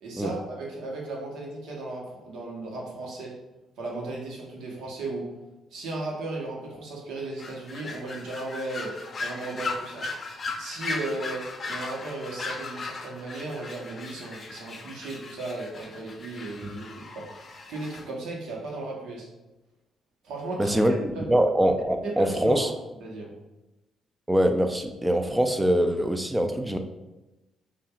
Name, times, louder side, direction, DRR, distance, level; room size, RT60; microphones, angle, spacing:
voice 1, 0.0-3.3 3.8-5.3 5.7-8.9 9.2-10.1 10.6-16.9 17.1-17.3 17.7-19.3 20.2-21.3 22.0-22.7 23.0-23.3, right 2 dB, 85° right, -2 dB, 1.1 m, -35 dB
sound 1, 7.4-18.0, left 3 dB, 40° left, 0.6 m, -37 dB
voice 2, 20.6-20.9 21.3-22.7 24.3-26.8, equal, 10° right, 6 dB, 0.4 m, -23 dB
5.5 x 2.5 x 2.4 m, 1.0 s
cardioid pair, 90°, 0 cm